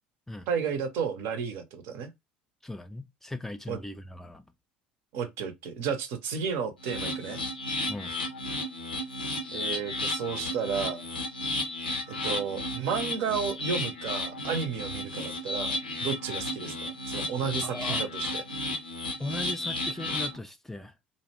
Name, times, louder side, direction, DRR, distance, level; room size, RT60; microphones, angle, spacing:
voice 1, 0.5-2.1 3.7-3.8 5.1-7.4 9.5-11.0 12.1-18.4, right 6 dB, 55° right, 0.5 m, -32 dB
voice 2, 2.6-4.5 7.9-8.1 17.6-18.0 19.2-20.9, left 1 dB, 5° left, 0.3 m, -38 dB
sound 1, 6.8-20.4, left 2 dB, 85° left, 0.5 m, -33 dB
2.5 x 2.0 x 2.9 m
figure-of-eight pair, 65°, 5 cm